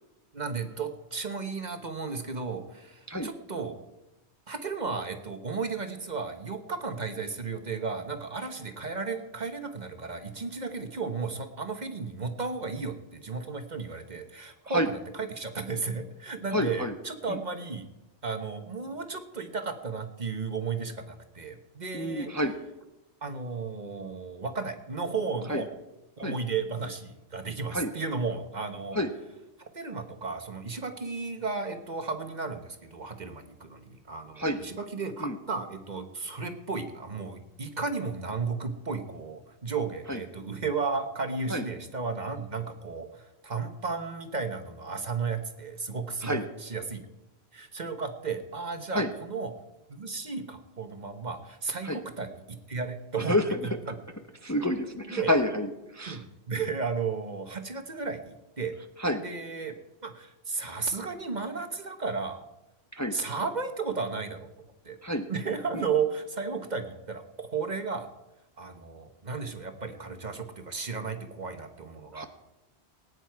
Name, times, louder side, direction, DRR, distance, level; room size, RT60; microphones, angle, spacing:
voice 1, 0.3-3.8 4.5-17.9 18.2-22.3 23.2-25.7 26.2-29.0 29.6-47.0 47.5-49.5 49.9-53.3 53.6-54.0 55.1-55.3 56.1-58.7 59.2-59.8 60.0-62.4 63.1-64.5 64.8-65.0 65.3-68.1 68.6-72.3, right 4 dB, 45° right, 7 dB, 1.2 m, -34 dB
voice 2, 16.5-16.9 17.3-17.4 21.9-22.5 25.5-25.6 26.2-26.4 27.7-27.9 28.9-29.1 34.4-34.6 35.2-35.4 40.1-40.2 41.5-41.6 46.2-46.4 48.9-49.1 51.8-52.0 53.3-53.6 54.4-56.2 59.0-59.2 63.0-63.2 65.0-65.3 65.7-65.8 72.1-72.2, equal, 15° left, 6 dB, 0.8 m, -28 dB
19.0 x 9.7 x 4.7 m, 0.97 s
omnidirectional pair, 1.1 m